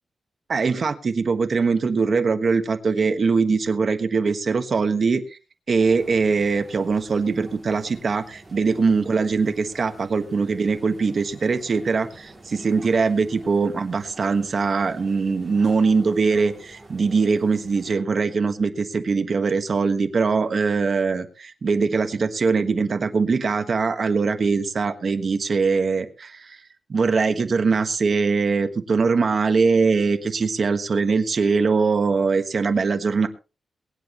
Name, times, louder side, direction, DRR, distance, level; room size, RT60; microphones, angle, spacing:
voice 1, 0.5-5.4 5.7-26.6 26.9-33.3, right 4 dB, 40° right, 8 dB, 1.3 m, -22 dB
sound 1, 5.8-17.9, right 2 dB, 10° right, 6.2 m, -47 dB
22.5 x 10.5 x 3.0 m, 0.33 s
wide cardioid pair, 170°, 0 cm